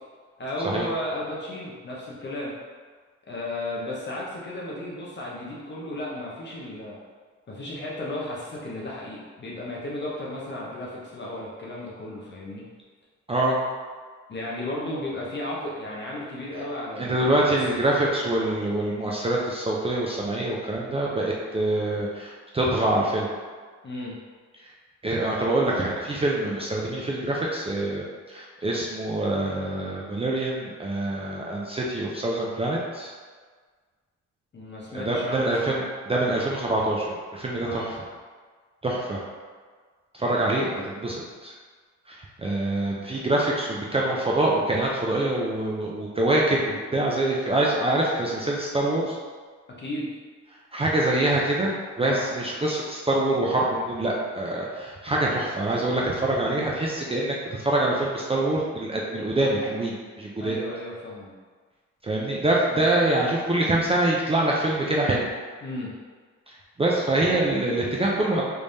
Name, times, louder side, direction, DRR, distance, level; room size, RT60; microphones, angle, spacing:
voice 1, 0.4-2.5 3.3-7.0 7.5-12.7 14.3-17.6 23.8-24.2 34.5-35.8 37.6-37.9 49.8-50.1 52.0-52.2 60.4-61.3 62.7-62.8 65.6-65.9, left 1 dB, 35° left, -5 dB, 0.8 m, -34 dB
voice 2, 13.3-13.6 17.0-23.3 25.0-33.1 34.9-35.8 36.1-37.8 38.8-39.2 40.2-41.5 42.1-49.2 50.7-60.6 62.0-65.2 66.8-68.4, right 1 dB, 20° right, -4 dB, 0.5 m, -25 dB
3.3 x 3.3 x 2.7 m, 1.5 s
cardioid pair, 90°, 30 cm